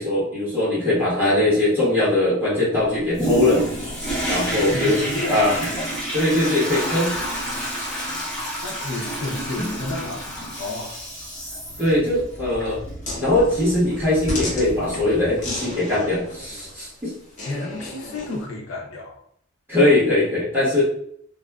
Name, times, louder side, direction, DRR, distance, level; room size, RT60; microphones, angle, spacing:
voice 1, 0.0-3.6 4.3-5.0 5.3-5.5 6.1-7.1 9.6-9.7 11.8-12.8 13.2-17.1 19.7-20.8, left 1 dB, 10° right, -10 dB, 1.3 m, -20 dB
Toilet flush, 3.1-15.6 16.1-16.2, right 1 dB, 5° left, 1.1 m, -29 dB
voice 2, 4.7-5.5 8.6-11.0 17.4-19.2, left 2 dB, 85° left, -1 dB, 0.6 m, -31 dB
sound 1, 13.0-18.4, left 1 dB, 40° left, 0.9 m, -35 dB
2.8 x 2.3 x 2.3 m, 0.67 s
head